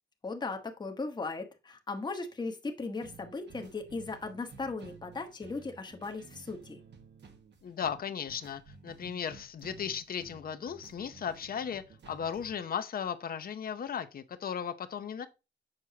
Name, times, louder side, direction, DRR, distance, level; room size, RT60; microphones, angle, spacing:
voice 1, 0.2-6.8, left 3 dB, 25° left, 1.1 m, -37 dB
sound 1, 3.0-12.6, right 4 dB, 75° right, 1.4 m, -54 dB
voice 2, 7.6-15.3, left 7 dB, 55° left, 0.7 m, -36 dB
7.4 x 6.2 x 2.8 m
wide cardioid pair, 165°, 18 cm